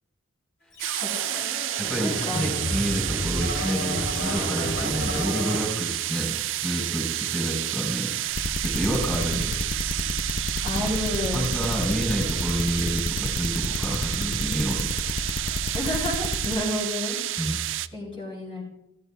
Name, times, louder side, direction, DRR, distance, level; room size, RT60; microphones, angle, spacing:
Scratching (performance technique), 0.7-5.6, left 1 dB, 75° left, 4.0 m, -32 dB
sound 1, 0.8-17.9, right 14 dB, 65° right, 0.4 m, -30 dB
voice 1, 0.9-1.5 2.0-2.5 10.6-11.4 15.7-17.2 17.9-18.6, left 1 dB, 30° left, -5 dB, 3.8 m, -30 dB
voice 2, 1.8-8.1 8.6-9.5 10.8-11.0 11.3-14.9 17.4-17.6, equal, 5° left, -2 dB, 4.1 m, -29 dB
sound 2, 8.3-16.5, left 2 dB, 45° left, 0.6 m, -30 dB
14.5 x 13.0 x 2.4 m, 0.84 s
head